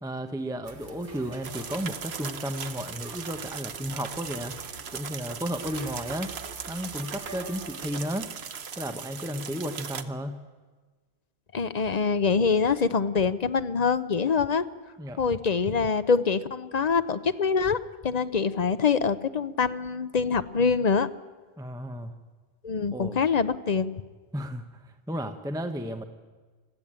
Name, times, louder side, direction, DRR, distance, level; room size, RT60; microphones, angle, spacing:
voice 1, 0.0-4.6 4.9-6.3 6.7-8.3 8.8-10.4 15.0-15.2 21.6-22.2 22.9-23.2 24.3-26.0, equal, 5° right, 7 dB, 0.9 m, -33 dB
sound 1, 0.6-8.2, right 3 dB, 60° right, 2.0 m, -46 dB
sound 2, 1.4-10.0, right 7 dB, 75° right, 1.2 m, -39 dB
voice 2, 11.5-14.6 15.2-17.8 18.0-21.1 22.6-23.9, left 5 dB, 45° left, 13 dB, 0.7 m, -25 dB
22.0 x 14.5 x 8.8 m, 1.4 s
omnidirectional pair, 1.1 m